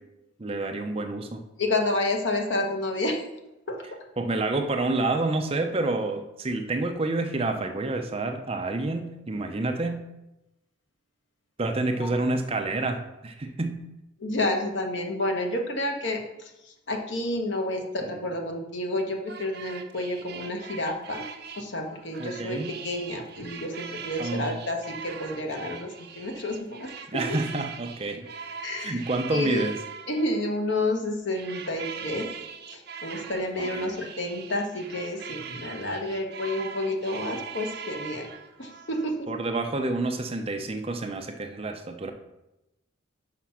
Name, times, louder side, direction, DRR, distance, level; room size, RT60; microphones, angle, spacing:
voice 1, 0.4-1.4 4.2-10.0 11.6-13.8 18.0-18.1 22.2-22.8 24.2-24.6 27.1-28.3 28.8-29.8 33.6-34.0 39.3-42.1, right 2 dB, 30° right, 6 dB, 0.5 m, -28 dB
voice 2, 1.6-3.2 3.7-3.8 12.0-12.1 14.2-16.5 16.9-21.2 21.6-26.9 27.3-27.4 28.6-29.0 29.3-29.7 30.1-32.3 32.7-38.3 38.6-39.3, left 1 dB, 60° left, 2 dB, 1.2 m, -30 dB
sound 1, 19.3-30.6 31.3-39.1, right 6 dB, 50° right, 0.8 m, -41 dB
6.0 x 5.0 x 5.8 m, 0.94 s
head